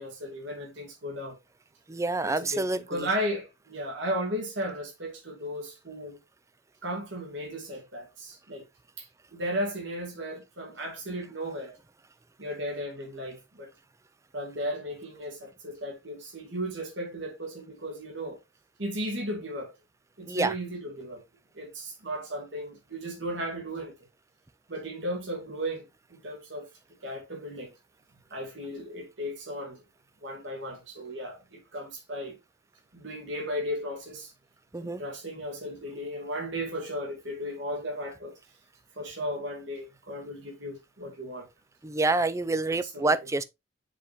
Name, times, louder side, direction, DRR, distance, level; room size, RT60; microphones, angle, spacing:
voice 1, 0.0-1.4 2.2-6.2 6.8-8.6 9.0-9.1 9.3-11.8 12.4-13.7 14.3-18.4 18.8-19.7 20.2-21.2 21.5-23.9 24.7-26.7 27.0-27.7 28.3-29.8 30.2-32.4 32.9-34.3 34.8-38.4 39.0-41.5 42.7-43.2, equal, 70° right, 2.3 m, -35 dB
voice 2, 1.9-3.1 20.2-20.6 34.7-35.0 41.8-43.4, right 3 dB, 15° right, 0.4 m, -27 dB
7.3 x 4.3 x 3.5 m
head